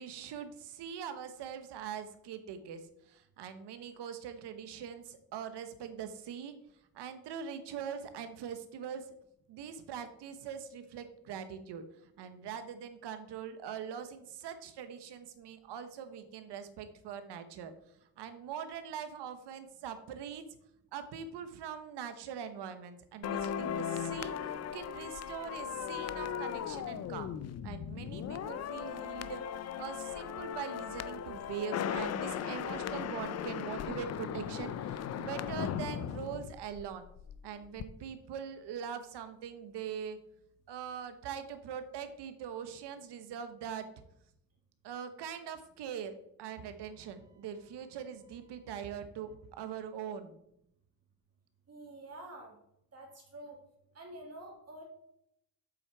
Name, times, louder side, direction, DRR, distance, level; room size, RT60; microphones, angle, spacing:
voice 1, 0.0-6.5 6.9-9.1 9.5-11.8 12.2-17.7 18.2-20.4 20.9-27.3 27.6-37.1 37.4-40.2 40.7-43.9 44.8-46.1 46.4-50.4, right 8 dB, 85° right, 10 dB, 1.0 m, -42 dB
sound 1, 23.2-37.4 37.6-37.8, left 8 dB, 40° left, 0.4 m, -37 dB
voice 2, 51.7-52.6 52.9-53.6 53.9-54.8, right 1 dB, 40° right, -1 dB, 2.1 m, -48 dB
7.8 x 5.9 x 4.6 m, 0.78 s
cardioid pair, 130°, 40 cm